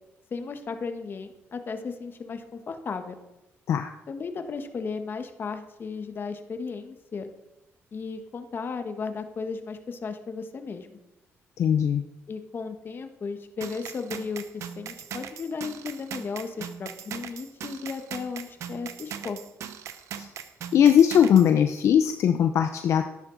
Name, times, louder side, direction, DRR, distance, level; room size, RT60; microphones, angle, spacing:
voice 1, 0.3-3.2 4.1-7.3 7.9-11.0 12.3-19.4, left 5 dB, 45° left, 7 dB, 1.3 m, -35 dB
voice 2, 11.6-12.0 20.2-20.3 20.7-23.1, left 9 dB, 65° left, 7 dB, 0.6 m, -20 dB
sound 1, 13.6-21.5, right 9 dB, 70° right, 0.8 m, -39 dB
13.5 x 10.5 x 4.0 m, 0.96 s
cardioid pair, 95°, 5 cm